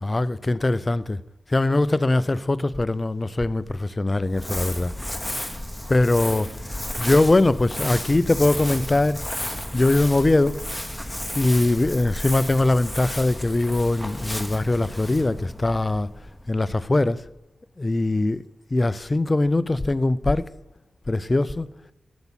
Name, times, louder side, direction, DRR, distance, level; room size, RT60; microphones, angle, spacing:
voice 1, 0.0-1.2 1.5-4.9 5.9-6.5 7.0-9.2 9.7-10.6 11.3-16.1 16.5-17.2 17.8-18.4 18.7-20.5 21.1-21.7, left 2 dB, 20° left, 0.4 m, -21 dB
Crumpling crinkling, 4.2-16.7, left 1 dB, 5° left, 0.9 m, -33 dB
8.0 x 7.1 x 7.2 m
wide cardioid pair, 125°, 0 cm